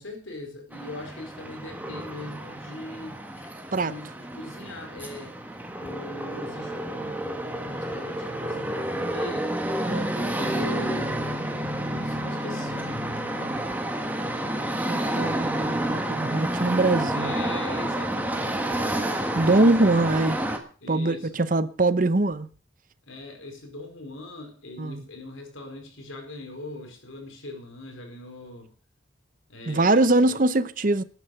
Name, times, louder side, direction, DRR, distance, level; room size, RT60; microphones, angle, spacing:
voice 1, 0.0-5.3 5.8-9.5 9.8-10.0 10.3-11.5 11.9-13.6 17.1-19.4 20.8-21.4 23.1-28.7 29.5-30.4, left 1 dB, 90° left, 4.5 m, -40 dB
sound 1, 0.7-20.6, right 1 dB, 10° right, 1.6 m, -30 dB
voice 2, 14.9-17.3 19.4-20.4 20.9-22.5 24.8-25.0 29.7-31.0, right 2 dB, 45° right, 0.7 m, -22 dB
13.5 x 9.3 x 6.6 m
head